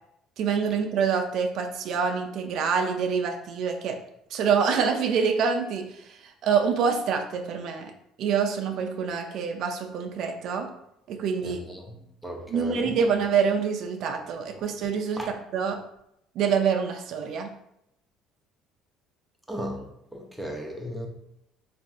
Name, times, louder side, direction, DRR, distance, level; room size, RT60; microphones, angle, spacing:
voice 1, 0.4-4.0 4.3-7.9 8.2-10.7 11.1-11.6 12.5-15.2 15.5-15.8 16.4-17.5, right 6 dB, 65° right, 4 dB, 0.3 m, -26 dB
voice 2, 11.4-12.9 15.2-15.3 19.5-21.1, equal, ahead, 0 dB, 0.6 m, -36 dB
3.3 x 2.5 x 2.3 m, 0.80 s
cardioid pair, 100°, 0 cm